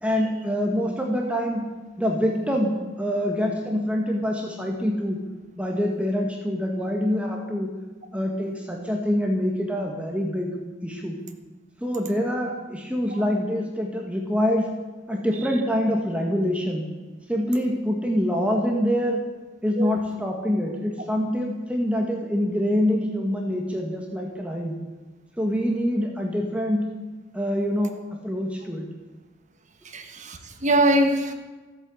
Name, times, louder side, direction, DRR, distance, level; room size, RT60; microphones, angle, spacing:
voice 1, 0.0-1.6 2.0-5.2 5.6-7.7 8.1-10.5 10.8-11.2 11.8-14.7 15.1-16.9 17.3-19.2 19.6-24.8 25.4-26.8 27.3-28.9, equal, 5° right, 1.5 m, -25 dB
voice 2, 29.8-31.3, right 1 dB, 35° right, 1.4 m, -23 dB
14.5 x 8.7 x 7.6 m
head